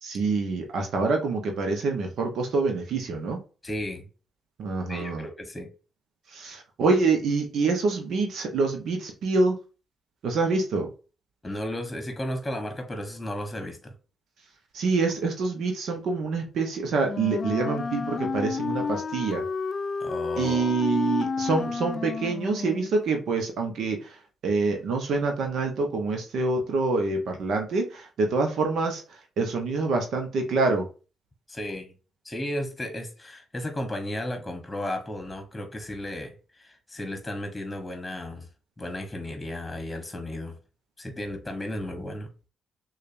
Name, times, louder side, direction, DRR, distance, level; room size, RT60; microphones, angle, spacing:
voice 1, 0.0-3.4 4.6-5.2 6.3-9.6 10.2-10.9 14.7-19.4 20.4-24.2 24.4-29.0 29.4-30.9, right 3 dB, 65° right, 0.8 m, -26 dB
voice 2, 3.6-4.1 4.9-5.7 11.4-13.9 20.0-20.8 31.5-31.9 32.2-38.5 38.8-40.6 41.0-42.3, left 1 dB, 15° left, 1.2 m, -34 dB
Wind instrument woodwind instrument, 17.0-22.9, left 5 dB, 45° left, 0.4 m, -31 dB
6.4 x 2.4 x 2.6 m
hypercardioid pair, 40°, 0 cm